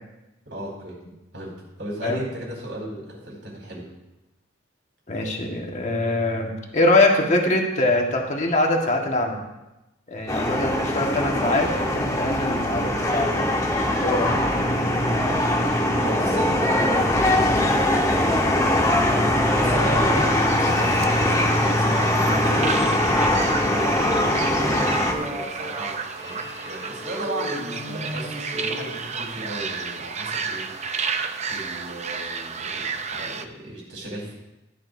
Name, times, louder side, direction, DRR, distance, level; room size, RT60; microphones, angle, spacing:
voice 1, 0.5-1.0 1.3-3.9 16.0-16.7 17.2-18.2 19.5-23.2 24.0-34.3, right 1 dB, 70° right, -3 dB, 4.5 m, -35 dB
voice 2, 5.1-9.4 10.1-13.5 13.9-14.4, left 2 dB, 40° left, 1 dB, 1.7 m, -23 dB
sound 1, 10.3-25.1, left 1 dB, 20° left, 1.3 m, -21 dB
sound 2, 20.2-33.5, right 5 dB, 35° right, 0.6 m, -32 dB
sound 3, 22.3-28.9, equal, 20° right, 2.5 m, -35 dB
15.5 x 10.5 x 2.7 m, 0.98 s
head